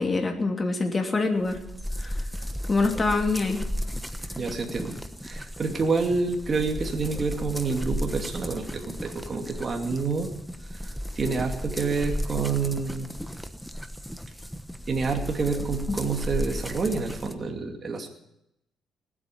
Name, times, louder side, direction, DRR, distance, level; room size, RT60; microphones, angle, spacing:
voice 1, 0.0-1.6 2.0-2.1 2.7-3.6, left 3 dB, 30° left, 3 dB, 2.9 m, -25 dB
sound 1, 1.4-17.3, equal, ahead, 1.2 m, -35 dB
voice 2, 4.4-5.0 5.2-10.3 10.8-13.1 14.9-18.1, right 4 dB, 40° right, 2 dB, 2.6 m, -28 dB
19.0 x 8.7 x 8.6 m, 0.80 s
cardioid pair, 90°, 0 cm